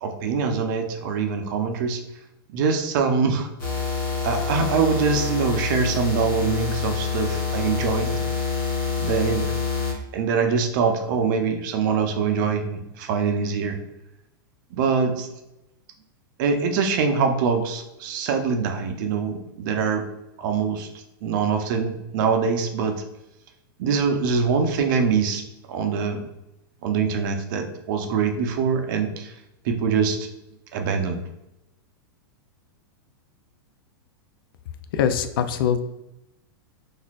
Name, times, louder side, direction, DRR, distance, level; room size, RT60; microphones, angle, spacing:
voice 1, 0.0-2.0 2.5-3.5 4.2-8.1 9.0-9.4 10.1-13.8 14.7-15.3 16.4-20.1 20.4-20.9 21.2-23.0 23.8-25.4 25.7-26.3 26.8-29.3 29.6-30.2 30.7-31.2, right 5 dB, 55° right, 5 dB, 0.6 m, -23 dB
sound 1, 3.6-9.9, left 5 dB, 40° left, 1.2 m, -27 dB
voice 2, 34.9-35.8, left 8 dB, 70° left, 10 dB, 0.4 m, -22 dB
4.0 x 2.5 x 2.4 m, 0.89 s
hypercardioid pair, 135°, 12 cm